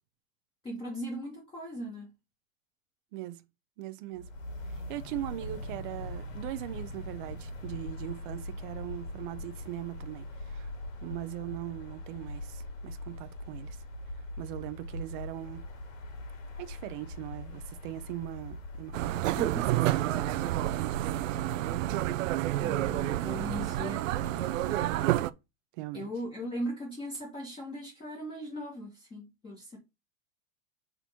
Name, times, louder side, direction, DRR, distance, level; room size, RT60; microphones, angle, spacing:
voice 1, 0.6-2.1 19.0-19.1 19.4-19.7 22.6-25.3 25.9-29.8, equal, 15° left, 1.6 m, -39 dB
voice 2, 3.1-3.4 3.8-4.3 4.9-10.7 11.0-13.8 14.4-15.7 16.6-21.3 24.9-25.2 25.7-26.1, right 15 dB, 45° right, 0.7 m, -40 dB
sound 1, 4.1-22.4, left 1 dB, 90° left, 2.9 m, -42 dB
sound 2, 18.9-25.3, right 15 dB, 85° right, 0.6 m, -29 dB
4.6 x 3.9 x 5.7 m
supercardioid pair, 165°, 38 cm